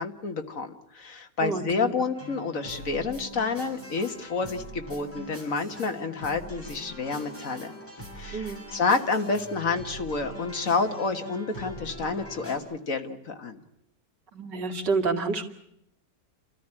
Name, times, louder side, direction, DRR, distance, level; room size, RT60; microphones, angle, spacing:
voice 1, 0.0-7.7 8.2-13.6, left 4 dB, 50° left, 6 dB, 1.7 m, -29 dB
voice 2, 1.4-1.9 8.3-8.6 14.3-15.4, right 4 dB, 90° right, 1 dB, 2.9 m, -28 dB
sound 1, 2.1-12.6, equal, 5° left, 6.8 m, -42 dB
29.5 x 13.5 x 9.9 m, 0.80 s
omnidirectional pair, 1.8 m